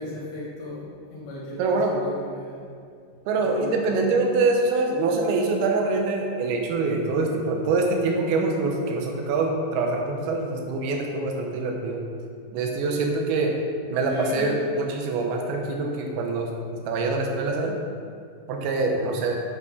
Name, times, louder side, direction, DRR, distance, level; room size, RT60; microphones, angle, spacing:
voice 1, 0.0-2.7 3.5-3.9 14.1-14.6, left 2 dB, 70° left, -5 dB, 2.9 m, -36 dB
voice 2, 1.6-1.9 3.3-12.0 12.5-13.6 13.9-16.5 16.9-17.8 18.5-19.4, right 3 dB, 80° right, 1 dB, 2.8 m, -24 dB
7.9 x 5.7 x 4.6 m, 2.2 s
omnidirectional pair, 4.6 m